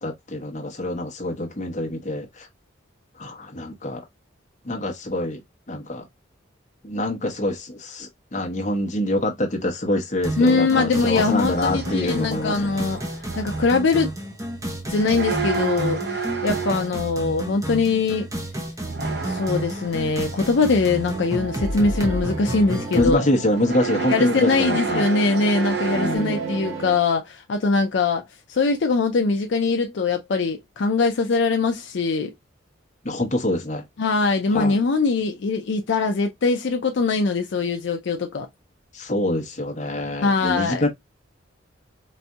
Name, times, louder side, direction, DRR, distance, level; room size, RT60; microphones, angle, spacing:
voice 1, 0.0-2.5 3.2-4.0 4.6-5.4 5.7-6.1 6.8-12.8 22.9-25.1 25.9-26.4 33.0-33.8 34.5-34.8 38.9-40.9, left 1 dB, 35° left, 0.9 m, -25 dB
sound 1, 10.2-23.2, right 1 dB, 15° right, 0.8 m, -31 dB
voice 2, 10.4-13.0 13.4-14.1 14.9-18.3 19.2-23.2 24.1-28.2 28.5-32.3 34.0-38.5 40.2-40.9, left 4 dB, 65° left, 0.4 m, -22 dB
sound 2, 11.2-14.1 14.8-17.1 18.8-22.3 22.6-23.0 23.5-26.2, right 5 dB, 50° right, 0.7 m, -32 dB
sound 3, 20.7-27.0, right 4 dB, 90° right, 1.9 m, -34 dB
4.1 x 2.6 x 2.2 m
head